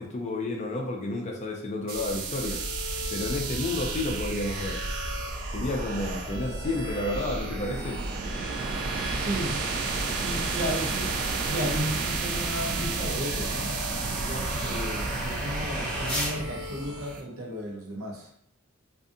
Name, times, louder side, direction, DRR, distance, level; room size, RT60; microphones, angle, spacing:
voice 1, 0.0-2.6 3.1-4.8 5.5-8.0, left 2 dB, 35° left, 1 dB, 0.4 m, -31 dB
sound 1, 1.9-17.2, right 3 dB, 45° right, 0.3 m, -32 dB
Bowed string instrument, 2.4-17.3, left 2 dB, 15° right, 0.8 m, -44 dB
sound 2, 7.9-16.4, equal, 10° left, 1.0 m, -38 dB
voice 2, 9.1-9.6 10.2-11.2 11.5-13.8 14.3-18.3, equal, 85° right, 0 dB, 0.7 m, -34 dB
2.5 x 2.4 x 2.6 m, 0.70 s
head